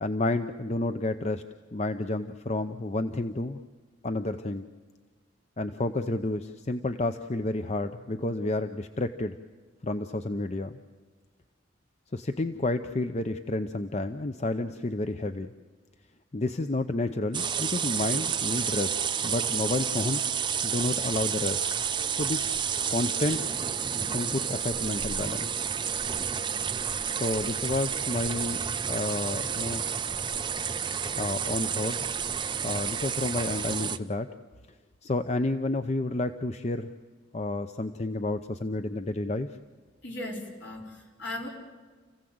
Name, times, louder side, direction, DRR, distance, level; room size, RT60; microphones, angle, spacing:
voice 1, 0.0-1.4 1.7-3.6 4.0-4.7 5.6-9.3 9.8-10.8 12.1-15.5 16.3-19.0 19.2-21.6 22.1-22.6 22.9-23.4 24.1-25.6 27.1-29.9 31.2-32.1 32.6-34.3 35.0-36.9 37.3-39.5, left 2 dB, 35° left, 9 dB, 0.6 m, -30 dB
sound 1, 17.3-34.0, right 7 dB, 25° right, 0.6 m, -30 dB
voice 2, 40.0-41.5, left 1 dB, 65° left, -1 dB, 5.0 m, -37 dB
29.5 x 16.0 x 7.9 m, 1.4 s
head